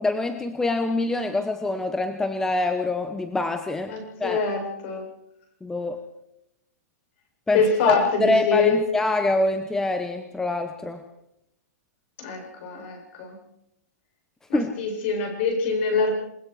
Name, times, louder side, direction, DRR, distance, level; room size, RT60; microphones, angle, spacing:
voice 1, 0.0-4.4 5.6-6.0 7.5-7.9 8.2-11.0 14.5-14.7, left 2 dB, 5° left, 8 dB, 1.0 m, -25 dB
voice 2, 3.9-5.1 7.5-8.8 12.2-13.4 14.5-16.1, left 4 dB, 45° left, 3 dB, 7.7 m, -24 dB
28.5 x 20.0 x 4.9 m, 0.82 s
hypercardioid pair, 160°, 9 cm